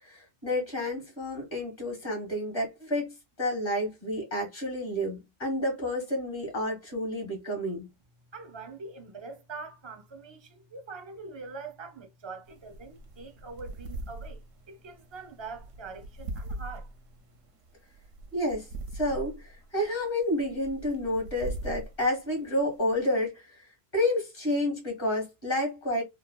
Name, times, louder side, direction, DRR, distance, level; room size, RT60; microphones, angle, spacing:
voice 1, 0.0-7.9 18.3-18.7 18.9-23.7 23.9-26.0, left 1 dB, 45° left, 1.8 m, -30 dB
voice 2, 8.3-16.9, right 4 dB, 30° right, 0.6 m, -43 dB
sound 1, 12.5-23.0, right 2 dB, 80° right, 1.1 m, -42 dB
4.0 x 2.2 x 2.3 m
omnidirectional pair, 1.3 m